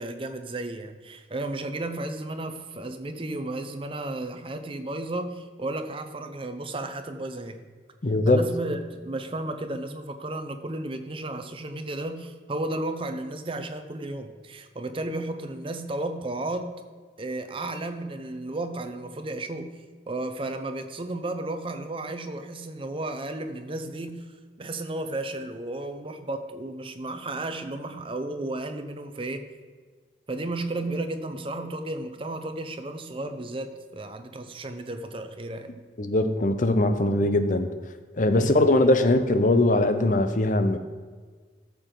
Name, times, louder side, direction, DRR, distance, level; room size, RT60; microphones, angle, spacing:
voice 1, 0.0-7.6 8.3-16.7 17.2-19.7 20.1-24.3 24.6-29.5 30.3-35.7 37.2-37.4 38.3-38.9, right 2 dB, 30° right, 7 dB, 0.7 m, -33 dB
voice 2, 8.0-8.4 36.0-37.7 38.1-40.8, left 2 dB, 45° left, 9 dB, 0.7 m, -21 dB
13.0 x 6.9 x 3.9 m, 1.5 s
head